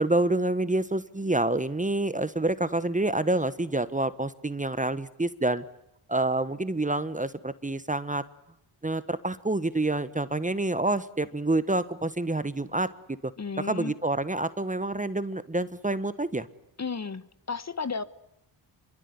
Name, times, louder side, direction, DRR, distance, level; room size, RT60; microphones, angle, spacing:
voice 1, 0.0-5.6 6.1-8.3 8.8-12.9 13.2-13.3 13.6-16.5, right 2 dB, 15° right, 14 dB, 1.2 m, -27 dB
voice 2, 13.4-13.9 16.8-18.0, left 5 dB, 35° left, 14 dB, 1.4 m, -33 dB
25.5 x 23.5 x 9.7 m, 0.81 s
cardioid pair, 65°, 48 cm